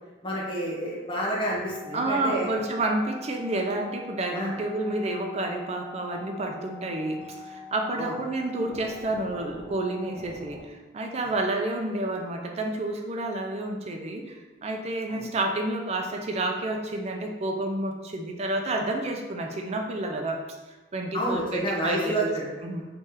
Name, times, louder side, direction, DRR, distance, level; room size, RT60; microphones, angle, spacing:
voice 1, 0.2-2.5 4.3-4.5 8.0-8.2 15.1-15.3 21.1-22.5, right 1 dB, 25° left, -5 dB, 0.9 m, -29 dB
sound 1, 1.6-10.6, left 4 dB, 40° left, 1.2 m, -44 dB
voice 2, 1.9-20.4 20.7-22.3 22.6-22.8, right 2 dB, 30° right, 2 dB, 0.4 m, -30 dB
3.1 x 2.8 x 3.6 m, 1.2 s
head